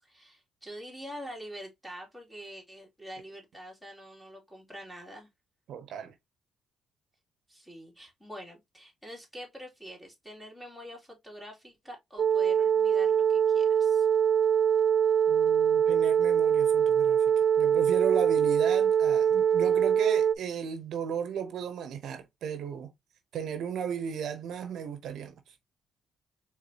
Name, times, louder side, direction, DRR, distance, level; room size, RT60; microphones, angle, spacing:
voice 1, 0.0-5.3 7.5-14.1, equal, ahead, 2.5 m, -45 dB
voice 2, 5.7-6.1 15.3-22.9 23.3-25.3, right 7 dB, 75° right, 0.7 m, -35 dB
sound 1, 12.2-20.3, right 8 dB, 50° right, 0.3 m, -23 dB
4.7 x 3.6 x 2.7 m
cardioid pair, 90°, 0 cm